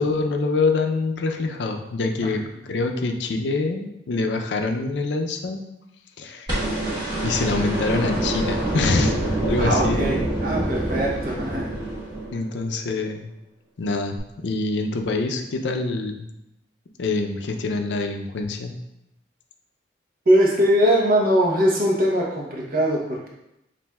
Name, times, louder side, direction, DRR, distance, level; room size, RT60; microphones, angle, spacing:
voice 1, 0.0-5.6 6.2-6.5 7.2-9.1 9.5-10.1 12.3-13.3 13.8-14.2 14.4-16.3 17.0-18.7, left 3 dB, 75° left, 4 dB, 0.5 m, -25 dB
sound 1, 6.5-12.7 14.2-14.3, right 1 dB, 25° right, 1.2 m, -26 dB
voice 2, 9.6-11.7 20.3-23.3, equal, 50° right, -2 dB, 0.9 m, -21 dB
7.0 x 2.6 x 2.3 m, 0.85 s
head